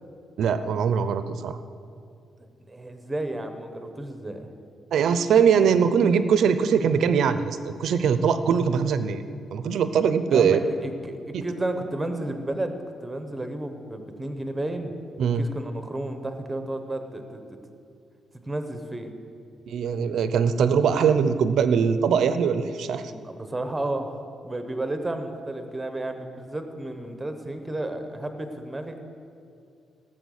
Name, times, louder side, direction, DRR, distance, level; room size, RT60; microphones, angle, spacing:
voice 1, 0.4-1.6 4.9-9.2 9.5-10.6 11.3-11.4 15.2-15.4 19.7-23.1, right 7 dB, 60° right, 11 dB, 0.7 m, -22 dB
voice 2, 2.6-4.5 5.6-5.8 10.3-12.7 13.0-14.9 15.3-17.6 18.4-19.1 23.0-29.0, right 1 dB, 10° right, 7 dB, 0.9 m, -32 dB
17.0 x 7.7 x 6.5 m, 2.6 s
cardioid pair, 180°, 0 cm